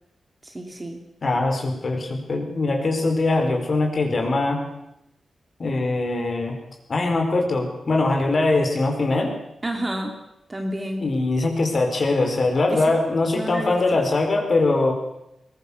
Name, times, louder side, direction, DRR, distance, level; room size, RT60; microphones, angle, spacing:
voice 1, 0.4-1.0 9.6-10.2 10.5-11.1 12.7-13.0 13.3-13.8, right 1 dB, 20° right, 4 dB, 2.7 m, -30 dB
voice 2, 1.2-4.6 5.6-6.6 6.9-9.4 11.0-14.9, left 2 dB, 40° left, 4 dB, 4.5 m, -22 dB
21.5 x 21.0 x 7.1 m, 0.87 s
wide cardioid pair, 155°, 0 cm